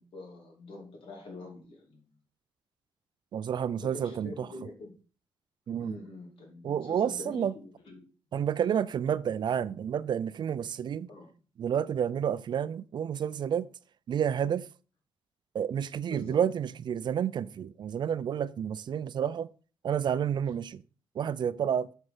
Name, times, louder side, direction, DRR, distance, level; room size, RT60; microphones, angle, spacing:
voice 1, 0.0-2.0 3.8-4.9 5.8-8.0 11.1-11.3 16.1-16.4, left 2 dB, 75° left, 2.8 m, -45 dB
voice 2, 3.3-4.5 5.7-6.0 6.6-7.5 8.3-11.1 11.6-13.7 14.1-14.7 15.5-19.5 19.8-20.8 21.2-21.9, right 8 dB, 55° right, 0.4 m, -30 dB
8.0 x 4.6 x 5.6 m
cardioid pair, 100°, 9 cm